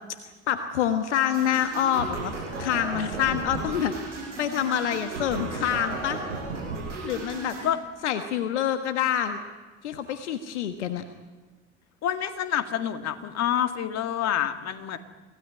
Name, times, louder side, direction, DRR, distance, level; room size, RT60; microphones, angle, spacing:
voice 1, 0.5-6.2 7.0-7.5 8.0-9.4 9.8-11.0, left 9 dB, 75° left, 8 dB, 1.4 m, -27 dB
sound 1, 1.3-7.7, right 3 dB, 80° right, 7.3 m, -35 dB
voice 2, 12.0-15.0, left 10 dB, 45° left, 8 dB, 2.2 m, -27 dB
26.5 x 17.0 x 9.9 m, 1.3 s
figure-of-eight pair, 60°, 35 cm